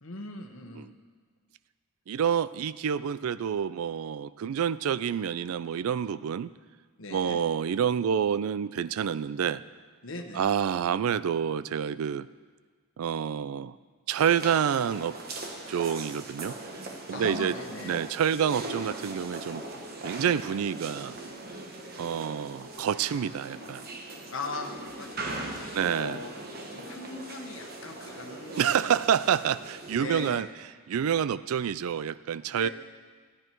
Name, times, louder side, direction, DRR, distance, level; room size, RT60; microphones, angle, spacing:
voice 1, 0.0-0.9 7.0-7.4 10.0-10.5 17.1-18.0 24.3-26.3 26.7-28.6 29.9-30.5 32.5-32.7, left 3 dB, 65° left, 4 dB, 1.1 m, -40 dB
voice 2, 2.1-6.5 7.1-9.6 10.3-12.3 13.0-13.8 14.1-15.2 15.7-16.6 17.1-17.5 17.8-19.6 20.0-21.2 22.0-23.8 25.7-26.2 28.6-30.5 30.9-32.7, right 8 dB, 90° right, 17 dB, 0.4 m, -28 dB
sound 1, 14.2-30.3, right 2 dB, 45° right, 1.2 m, -40 dB
13.5 x 9.8 x 4.5 m, 1.5 s
head